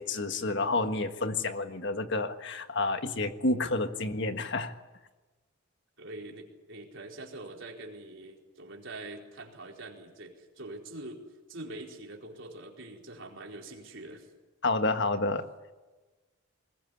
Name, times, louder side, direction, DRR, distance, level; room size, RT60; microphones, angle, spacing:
voice 1, 0.0-4.7 14.6-15.5, left 2 dB, 55° left, 8 dB, 1.6 m, -29 dB
voice 2, 6.0-11.2 11.5-14.3, right 2 dB, 60° right, 0 dB, 4.4 m, -44 dB
21.5 x 20.0 x 10.0 m, 1.2 s
head